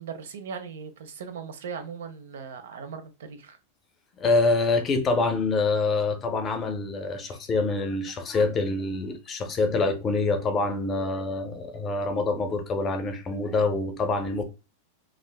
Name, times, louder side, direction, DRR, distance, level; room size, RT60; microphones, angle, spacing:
voice 1, 0.0-3.6 7.2-7.4, right 6 dB, 90° right, 0.6 m, -39 dB
voice 2, 4.2-14.4, left 3 dB, 20° left, 0.5 m, -26 dB
2.5 x 2.4 x 3.3 m
supercardioid pair, 165°, 0 cm